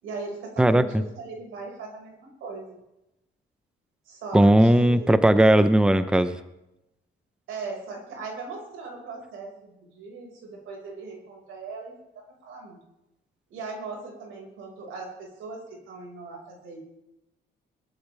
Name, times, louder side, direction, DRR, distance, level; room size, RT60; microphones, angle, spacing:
voice 1, 0.0-2.8 4.1-5.1 7.5-11.9 12.4-12.8 13.5-16.8, right 4 dB, 90° right, 0 dB, 5.6 m, -39 dB
voice 2, 0.6-1.0 4.3-6.4, right 1 dB, 5° right, 11 dB, 0.8 m, -18 dB
21.5 x 14.0 x 3.5 m, 0.90 s
cardioid pair, 90°, 20 cm